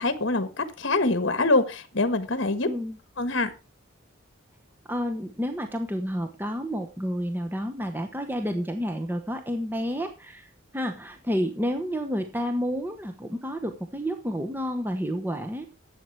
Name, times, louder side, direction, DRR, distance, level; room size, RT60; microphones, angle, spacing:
voice 1, 0.0-2.7 3.2-3.5, left 2 dB, 60° left, 11 dB, 1.3 m, -24 dB
voice 2, 2.6-3.0 4.9-15.7, equal, 10° right, 5 dB, 1.0 m, -30 dB
12.0 x 8.3 x 4.7 m, 0.30 s
head